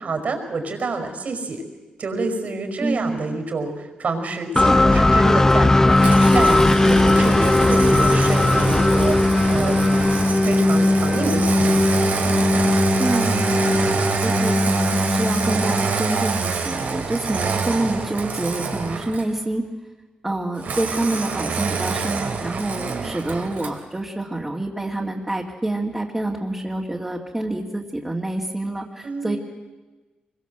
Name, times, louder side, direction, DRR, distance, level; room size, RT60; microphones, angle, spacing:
voice 1, 0.0-1.6 2.0-9.2 9.5-10.0 10.4-12.0 22.8-23.2 29.0-29.4, right 3 dB, 60° right, 5 dB, 5.4 m, -28 dB
voice 2, 2.8-3.2 13.0-19.6 20.2-29.4, right 1 dB, 15° right, -2 dB, 2.4 m, -27 dB
sound 1, 4.6-16.3, left 2 dB, 15° left, 0.8 m, -18 dB
Engine starting, 6.0-19.4 20.6-23.8, right 5 dB, 80° right, 3.3 m, -26 dB
25.5 x 22.5 x 8.1 m, 1.2 s
cardioid pair, 100°, 3 cm